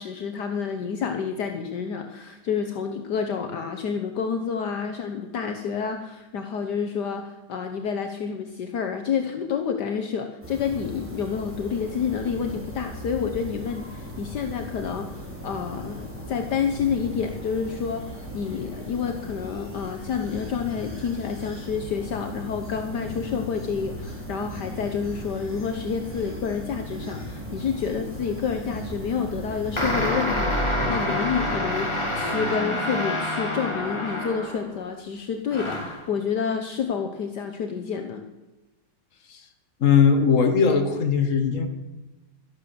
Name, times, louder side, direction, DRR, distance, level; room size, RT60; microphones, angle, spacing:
voice 1, 0.0-38.2, left 6 dB, 65° left, 6 dB, 1.6 m, -29 dB
sound 1, 10.4-29.9, equal, 5° right, 5.0 m, -37 dB
sound 2, 29.8-34.8 35.5-36.1, left 1 dB, 15° left, 2.2 m, -27 dB
voice 2, 39.8-41.7, left 6 dB, 45° left, 6 dB, 1.9 m, -19 dB
13.0 x 11.5 x 7.0 m, 1.1 s
omnidirectional pair, 2.0 m